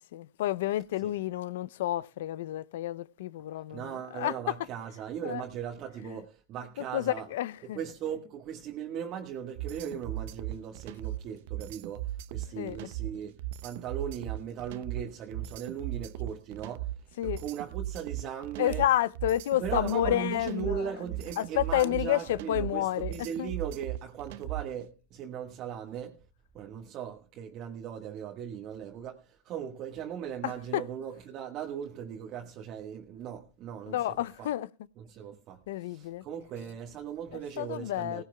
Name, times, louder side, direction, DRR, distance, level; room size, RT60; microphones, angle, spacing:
voice 1, 0.1-3.9 4.1-4.3 5.2-5.4 6.9-7.8 12.6-12.8 17.2-17.4 18.6-20.8 21.4-23.1 23.4-23.5 30.4-30.8 33.9-34.7 35.7-36.2 37.6-38.2, left 13 dB, 75° left, 0.6 m, -30 dB
voice 2, 3.7-7.3 7.6-18.9 19.6-26.3 26.5-34.5 35.0-38.2, right 8 dB, 45° right, 1.5 m, -38 dB
sound 1, 9.6-24.8, right 14 dB, 70° right, 0.7 m, -37 dB
18.0 x 16.5 x 2.3 m
supercardioid pair, 120°, 0 cm